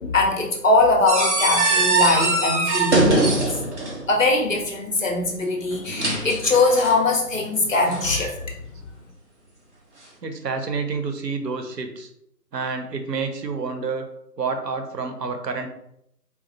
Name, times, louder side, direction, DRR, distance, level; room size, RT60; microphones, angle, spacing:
voice 1, 0.0-3.7 4.1-8.3, left 3 dB, 55° left, 1 dB, 0.9 m, -21 dB
sound 1, 1.1-4.1 5.7-7.0 7.9-8.3, right 2 dB, 45° right, 0.7 m, -22 dB
voice 2, 10.2-12.1 12.5-14.1 14.4-15.7, right 4 dB, 80° right, 6 dB, 0.8 m, -28 dB
4.1 x 2.3 x 2.7 m, 0.75 s
figure-of-eight pair, 170°, 49 cm